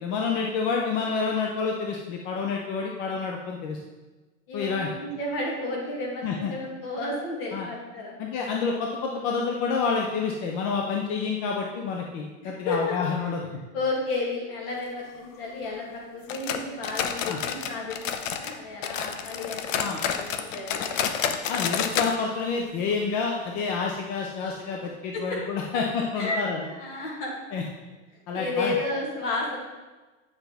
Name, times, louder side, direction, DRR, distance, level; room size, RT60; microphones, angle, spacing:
voice 1, 0.0-3.8 4.5-4.9 6.2-6.5 7.5-7.7 8.2-13.4 17.3-17.4 19.8-20.0 21.5-26.7 27.5-27.6 28.3-28.7, left 5 dB, 30° left, 0 dB, 0.5 m, -28 dB
voice 2, 4.5-8.2 12.4-13.3 13.7-15.8 16.1-21.2 25.1-25.4 26.2-26.4 26.7-27.3 28.1-29.6, left 2 dB, 50° left, -2 dB, 2.4 m, -32 dB
sound 1, 16.3-18.6 18.8-22.1 22.4-22.5 22.9-23.0 23.6-23.7, left 8 dB, 85° left, 0.8 m, -29 dB
9.2 x 5.6 x 3.4 m, 1.2 s
supercardioid pair, 170°, 37 cm